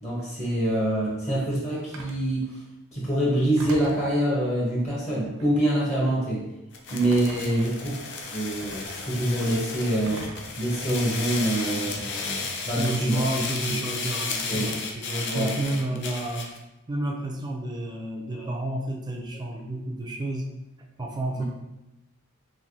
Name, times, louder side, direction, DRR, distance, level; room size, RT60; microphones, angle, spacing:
voice 1, 0.0-2.6 2.9-6.4 6.9-7.9 8.3-10.2 10.6-13.2 14.5-14.7 15.3-15.5 15.9-16.0 18.3-18.5 21.4-21.5, right 1 dB, 30° left, -6 dB, 0.8 m, -26 dB
Telephone, 1.9-2.3 3.6-4.1 5.3-5.7 6.9-7.6 8.6-9.0 10.1-10.6 11.6-11.7 12.8-13.3, right 1 dB, 70° right, 0.5 m, -41 dB
sound 1, 6.7-16.6, left 4 dB, 55° left, 0.4 m, -33 dB
voice 2, 7.4-7.7 12.8-16.5 16.9-20.5 21.0-21.5, right 1 dB, 20° right, 1 dB, 0.3 m, -30 dB
3.2 x 2.7 x 2.6 m, 0.96 s
head